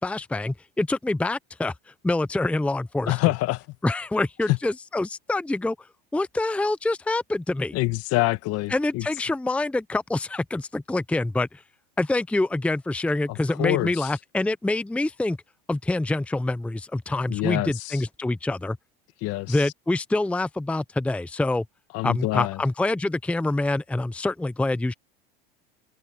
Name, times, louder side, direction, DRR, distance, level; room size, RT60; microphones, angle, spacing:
voice 1, 0.0-1.7 2.0-3.3 3.8-5.8 6.1-7.8 8.7-11.6 12.0-15.4 15.7-18.8 19.5-21.6 22.0-24.9, left 2 dB, 5° left, 0.7 m, -26 dB
voice 2, 3.1-3.6 4.5-4.6 7.7-9.1 13.3-14.1 17.3-18.0 19.2-19.6 21.9-22.6, left 19 dB, 55° left, 1.8 m, -26 dB
hypercardioid pair, 100°, 29 cm